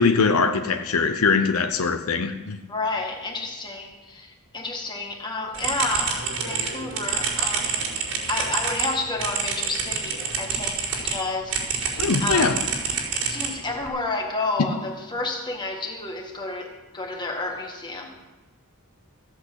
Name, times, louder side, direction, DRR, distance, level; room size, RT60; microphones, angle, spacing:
voice 1, 0.0-2.6 12.0-12.6, left 4 dB, 75° left, 0.8 m, -21 dB
voice 2, 2.7-12.6 13.1-18.2, left 3 dB, 20° left, 1.9 m, -31 dB
sound 1, 5.5-11.2 11.5-13.9, right 5 dB, 85° right, 5.0 m, -27 dB
15.0 x 8.3 x 8.1 m
head